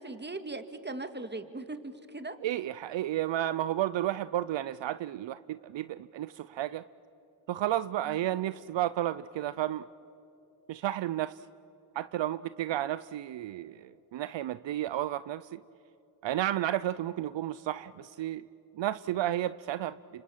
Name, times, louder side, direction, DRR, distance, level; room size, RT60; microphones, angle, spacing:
voice 1, 0.0-2.4 8.0-8.2, right 2 dB, 20° right, 9 dB, 2.2 m, -39 dB
voice 2, 2.4-6.9 7.5-9.9 10.7-11.4 12.0-15.6 16.2-18.4 18.8-20.2, right 13 dB, 70° right, 16 dB, 0.6 m, -32 dB
28.0 x 26.0 x 7.3 m, 2.8 s
cardioid pair, 60°, 46 cm